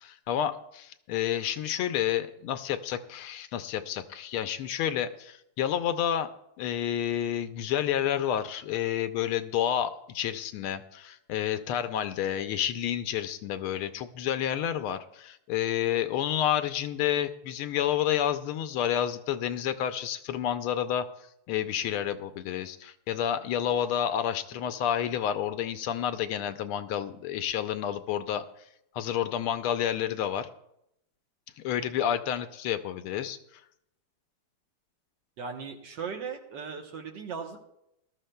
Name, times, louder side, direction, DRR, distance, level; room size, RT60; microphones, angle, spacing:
voice 1, 0.0-6.3 6.6-21.1 21.5-28.4 28.9-30.5 31.6-33.6, left 10 dB, 80° left, 10 dB, 1.5 m, -30 dB
voice 2, 35.4-37.6, right 6 dB, 60° right, 3 dB, 1.6 m, -37 dB
19.5 x 12.5 x 2.2 m, 0.80 s
omnidirectional pair, 2.4 m